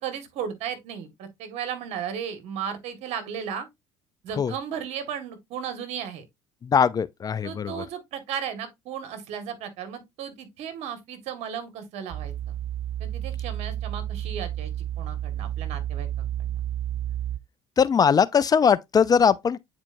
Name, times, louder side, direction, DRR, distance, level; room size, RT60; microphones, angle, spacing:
voice 1, 0.0-3.7 4.2-6.2 7.4-12.3 13.0-16.3, right 8 dB, 65° right, 1.7 m, -35 dB
voice 2, 6.6-7.8 17.8-19.6, left 6 dB, 35° left, 0.5 m, -21 dB
sound 1, 12.1-17.4, right 12 dB, 45° right, 0.4 m, -31 dB
8.8 x 4.4 x 2.6 m
supercardioid pair, 80°, 12 cm